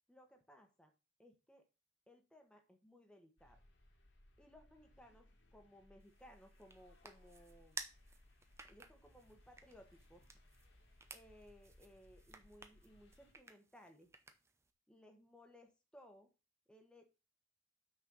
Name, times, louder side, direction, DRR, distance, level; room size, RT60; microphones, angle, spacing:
voice 1, 0.1-0.9 1.2-1.7 2.1-3.6 4.4-7.8 8.7-10.2 11.1-14.1 14.9-16.3 16.7-17.0, equal, 5° left, 3 dB, 1.3 m, -62 dB
sound 1, 3.4-13.3, left 1 dB, 75° left, 2.6 m, -66 dB
sound 2, 6.0-14.7, right 3 dB, 15° right, 0.8 m, -56 dB
6.3 x 5.5 x 7.1 m, 0.29 s
head